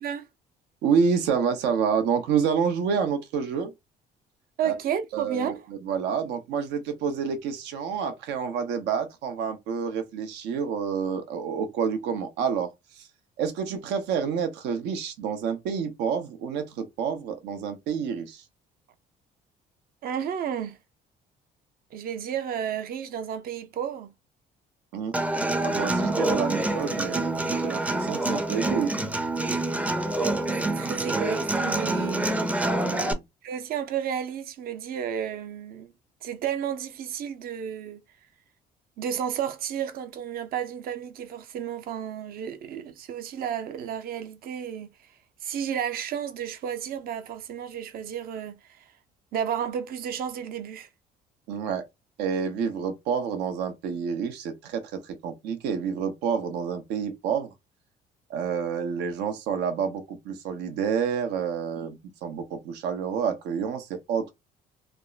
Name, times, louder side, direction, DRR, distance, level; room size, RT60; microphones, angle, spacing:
voice 1, 0.8-3.7 4.6-4.7 5.1-5.5 5.8-12.7 13.0-13.1 13.4-18.4 24.9-25.1 25.6-28.9 32.8-33.2 51.5-51.8 52.2-57.5 58.3-64.3, right 6 dB, 90° right, 0.8 m, -28 dB
voice 2, 4.6-5.7 20.0-20.8 21.9-24.1 30.2-32.3 33.4-35.9 36.2-38.0 39.0-44.9 45.4-48.8 49.3-50.9 61.8-61.9, right 8 dB, 60° right, 0.7 m, -32 dB
Human voice / Acoustic guitar, 25.1-33.1, right 2 dB, 10° right, 0.5 m, -26 dB
3.4 x 2.1 x 2.4 m
cardioid pair, 110°, 17 cm